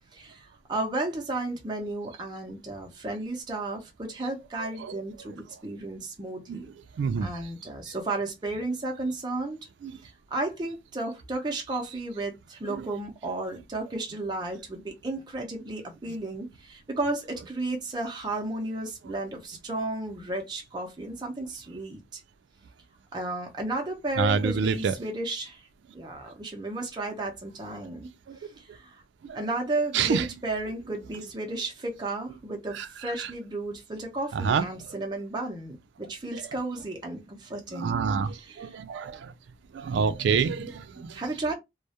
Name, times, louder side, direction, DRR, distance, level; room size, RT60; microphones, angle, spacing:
voice 1, 0.1-6.7 7.2-9.6 10.0-22.2 23.1-25.7 25.9-28.1 28.4-29.0 29.3-38.0 38.4-38.8 40.6-40.7 41.1-41.5, right 2 dB, 25° right, 0.5 m, -33 dB
voice 2, 7.0-7.3 9.8-9.9 12.7-12.9 24.2-24.9 28.3-28.4 29.2-29.4 29.9-30.3 32.7-32.9 33.2-33.3 34.3-34.9 36.3-36.4 37.7-39.3 39.7-41.2, right 6 dB, 90° right, 0.3 m, -27 dB
2.2 x 2.0 x 2.7 m
head